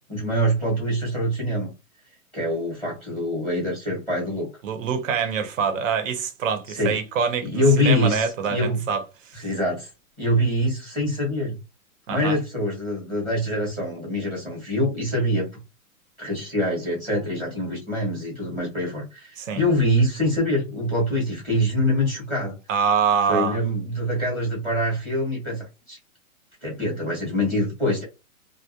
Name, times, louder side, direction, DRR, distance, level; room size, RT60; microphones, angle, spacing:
voice 1, 0.1-1.7 2.3-4.5 6.7-7.0 7.4-8.8 9.3-9.9 10.2-11.6 12.1-15.5 16.2-22.6 23.3-26.0 26.6-28.0, equal, 5° right, 0.4 m, -24 dB
voice 2, 4.6-9.4 12.1-12.4 19.4-19.6 22.7-23.6, right 6 dB, 60° right, 0.8 m, -25 dB
2.3 x 2.1 x 2.8 m
hypercardioid pair, 155°, 44 cm